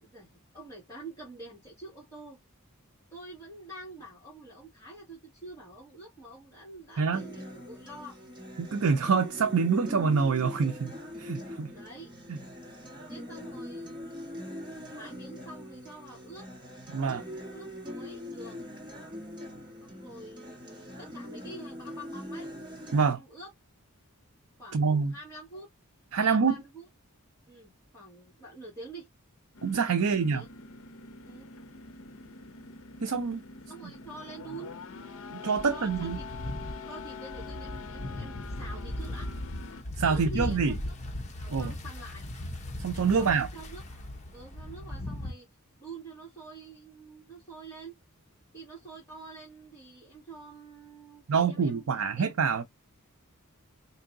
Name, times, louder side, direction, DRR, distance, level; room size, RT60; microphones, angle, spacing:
voice 1, 0.0-2.4 3.1-8.2 11.7-12.1 13.1-14.4 14.9-16.5 17.5-18.7 19.8-22.5 23.0-23.5 24.6-25.7 26.1-26.9 27.5-29.1 30.0-30.5 31.2-31.5 33.7-34.7 35.7-36.2 36.9-39.3 40.1-40.9 41.3-42.2 43.2-44.0 44.3-45.5 45.8-48.0 48.5-52.3, right 2 dB, 15° left, 2.3 m, -47 dB
Acoustic guitar, 7.1-23.1, left 1 dB, 20° right, 1.6 m, -42 dB
voice 2, 8.6-10.9 11.2-11.7 12.3-12.4 16.9-17.2 22.9-23.2 24.7-25.1 26.1-26.6 29.6-30.4 33.0-33.4 35.3-36.2 40.0-40.8 41.5-41.7 42.8-43.5 51.3-52.6, right 5 dB, 75° right, 0.6 m, -26 dB
sound 1, 29.5-39.8, left 4 dB, 65° left, 0.6 m, -45 dB
sound 2, 35.6-45.3, left 1 dB, 30° left, 0.9 m, -38 dB
4.5 x 2.8 x 2.6 m
head